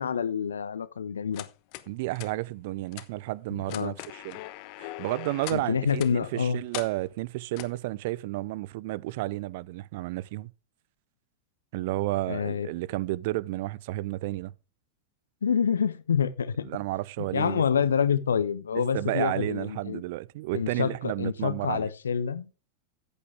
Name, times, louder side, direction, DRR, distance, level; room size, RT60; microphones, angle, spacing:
voice 1, 0.0-1.5 3.5-3.9 5.5-6.6 12.3-12.7 15.4-16.6 17.2-20.0 20.5-22.5, left 7 dB, 70° left, 0.9 m, -27 dB
sound 1, 1.3-1.9 2.1-2.3 2.9-3.1 3.6-5.6 6.0-6.1 6.7-6.9 7.6-7.8, left 17 dB, 45° left, 1.1 m, -40 dB
voice 2, 1.9-4.4 4.8-10.5 11.7-14.5 16.6-17.6 18.9-21.9, right 18 dB, 50° right, 0.5 m, -32 dB
14.0 x 8.6 x 3.5 m
figure-of-eight pair, 90°, 0 cm